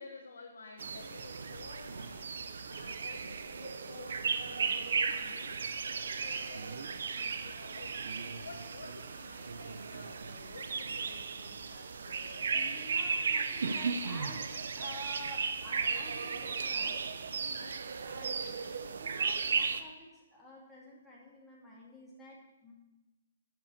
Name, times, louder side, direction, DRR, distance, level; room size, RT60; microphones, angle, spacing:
voice 1, 0.0-2.4 2.7-5.6 6.1-7.1 7.4-12.7 17.4-17.8, left 3 dB, 85° left, 0 dB, 1.2 m, -51 dB
sound 1, 0.8-19.8, right 5 dB, 75° right, 0.7 m, -35 dB
voice 2, 12.5-17.0 18.0-22.7, left 1 dB, ahead, -8 dB, 2.9 m, -50 dB
8.4 x 6.1 x 6.6 m, 1.1 s
hypercardioid pair, 150°, 0 cm